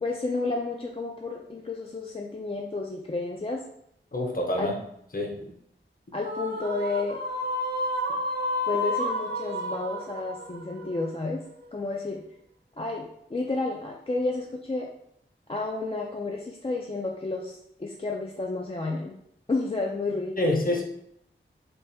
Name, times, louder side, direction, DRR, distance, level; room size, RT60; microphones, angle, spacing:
voice 1, 0.0-3.6 4.6-4.7 6.1-7.2 8.7-11.4 11.7-12.2 12.8-14.9 15.5-19.2 19.5-20.6, left 3 dB, 30° left, 0 dB, 0.4 m, -31 dB
voice 2, 4.1-4.8 5.1-5.5 20.4-20.8, left 1 dB, 45° left, 0 dB, 0.8 m, -27 dB
sound 1, 6.2-11.7, left 1 dB, 50° right, 0.7 m, -31 dB
3.4 x 2.1 x 4.2 m, 0.73 s
wide cardioid pair, 55°, 20 cm